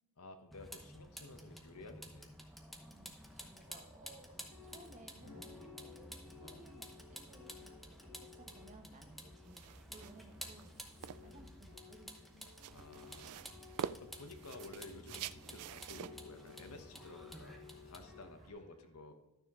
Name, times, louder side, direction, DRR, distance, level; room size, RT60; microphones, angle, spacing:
voice 1, 0.2-2.3 3.7-3.8 6.4-6.6 9.1-9.3 11.2-11.5 12.7-13.4 14.0-19.1, left 2 dB, 85° left, 7 dB, 1.0 m, -53 dB
Vehicle, 0.5-18.5, equal, ahead, 0.9 m, -53 dB
voice 2, 2.9-12.3 18.4-18.8, right 2 dB, 35° right, 3 dB, 1.1 m, -60 dB
sound 1, 4.3-18.2, left 5 dB, 35° left, 3.3 m, -57 dB
sound 2, 9.4-18.0, right 9 dB, 85° right, 0.3 m, -48 dB
12.0 x 6.6 x 3.7 m, 1.1 s
head